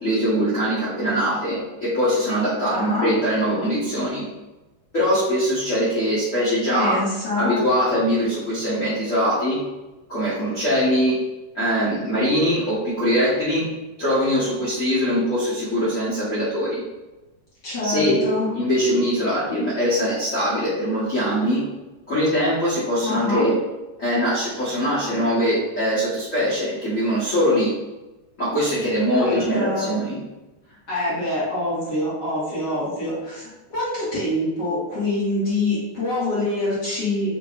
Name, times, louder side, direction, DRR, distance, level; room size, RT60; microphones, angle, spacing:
voice 1, 0.0-4.2 4.9-7.0 7.4-9.6 10.1-11.2 11.5-13.7 14.0-16.8 17.8-18.2 18.5-21.6 22.1-23.5 24.0-27.7 28.4-30.2, equal, 60° left, -11 dB, 0.8 m, -22 dB
voice 2, 2.7-3.2 6.7-7.6 17.6-18.5 23.0-23.5 29.1-29.9 30.7-37.4, left 2 dB, 45° left, -10 dB, 1.8 m, -25 dB
5.5 x 2.9 x 2.4 m, 1.1 s
omnidirectional pair, 3.3 m